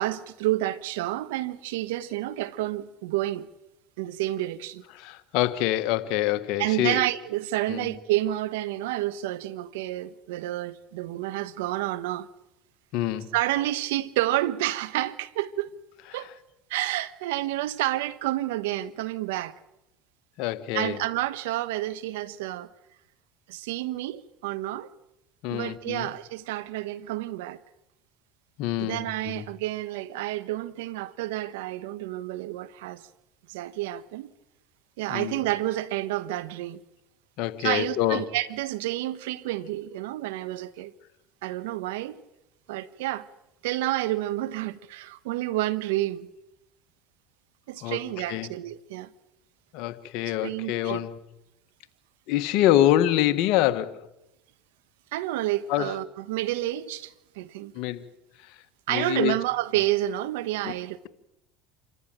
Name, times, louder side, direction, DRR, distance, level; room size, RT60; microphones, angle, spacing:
voice 1, 0.0-3.5 4.0-4.8 6.6-12.3 13.3-15.7 16.1-16.3 16.7-19.6 20.7-22.7 23.5-24.9 25.5-27.6 28.8-33.1 33.5-34.3 35.0-36.8 37.6-40.9 41.4-42.2 42.7-43.3 43.6-46.3 47.7-49.1 50.4-51.0 55.1-57.7 58.9-61.1, right 15 dB, 80° right, 1.0 m, -29 dB
voice 2, 4.9-7.0 7.7-7.9 12.9-13.3 16.1-16.3 20.4-21.0 25.4-26.1 28.6-29.5 35.1-35.4 37.4-38.2 47.8-48.0 48.3-48.5 49.7-51.2 52.3-54.0 55.7-56.0 57.7-58.1 58.4-58.6 58.9-59.4 60.6-60.8, left 13 dB, 70° left, 1.5 m, -26 dB
27.5 x 14.5 x 9.2 m
supercardioid pair, 85°, 0 cm